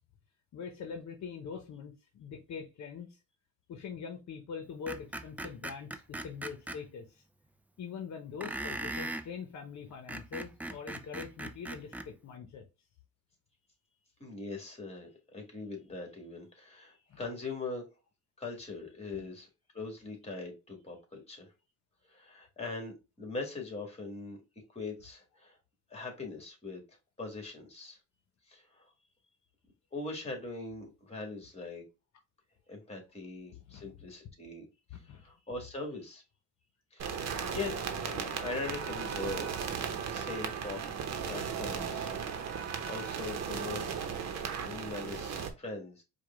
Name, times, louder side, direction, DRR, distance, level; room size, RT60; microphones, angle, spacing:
voice 1, 0.5-3.2 3.7-7.2 7.8-12.6 17.1-17.2 19.1-19.3 33.7-33.8 34.9-35.2, left 6 dB, 65° left, 0.8 m, -43 dB
Screech, 4.9-6.8 8.4-9.3 9.9-12.1, right 1 dB, 5° right, 0.4 m, -39 dB
voice 2, 14.2-17.8 18.4-19.5 19.7-21.5 22.1-24.4 24.7-25.6 25.9-26.8 27.2-28.0 28.5-28.9 29.9-31.8 32.7-34.7 34.9-36.2 36.9-37.3 37.5-39.5 40.0-40.8 41.2-42.1 42.9-46.0, left 3 dB, 20° left, 1.9 m, -41 dB
sound 1, 37.0-45.5, right 6 dB, 60° right, 0.9 m, -36 dB
4.7 x 2.3 x 3.4 m
cardioid pair, 90°, 30 cm